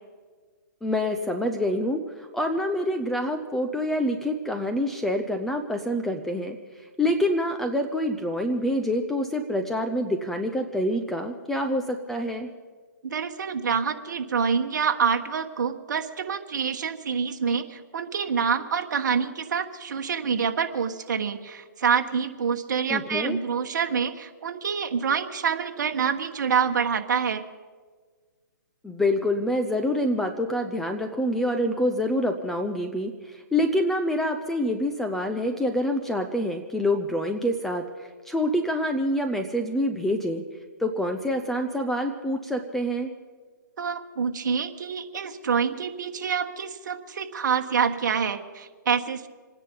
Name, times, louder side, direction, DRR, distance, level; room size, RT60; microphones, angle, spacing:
voice 1, 0.8-12.5 22.9-23.4 28.8-40.4 40.8-43.1, left 1 dB, 5° left, 4 dB, 0.5 m, -26 dB
voice 2, 13.0-27.4 43.8-49.3, right 6 dB, 60° right, 5 dB, 1.4 m, -26 dB
26.5 x 10.0 x 5.4 m, 1.5 s
hypercardioid pair, 160°, 11 cm